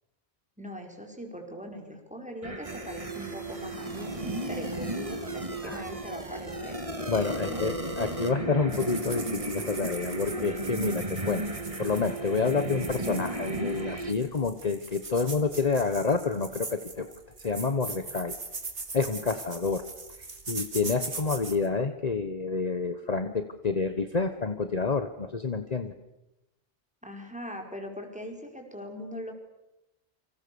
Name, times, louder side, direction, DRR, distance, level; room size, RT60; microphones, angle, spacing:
voice 1, 0.6-6.9 7.5-7.6 27.0-29.3, equal, 5° right, 2 dB, 5.2 m, -40 dB
sound 1, 2.4-14.1, right 1 dB, 30° right, 2.5 m, -34 dB
voice 2, 7.1-11.4 11.8-17.1 17.4-18.3 18.9-19.8 20.2-25.9, left 4 dB, 35° left, 8 dB, 1.3 m, -28 dB
sound 2, 8.7-21.7, right 3 dB, 85° right, 2.9 m, -41 dB
29.0 x 26.0 x 7.1 m, 0.94 s
omnidirectional pair, 1.1 m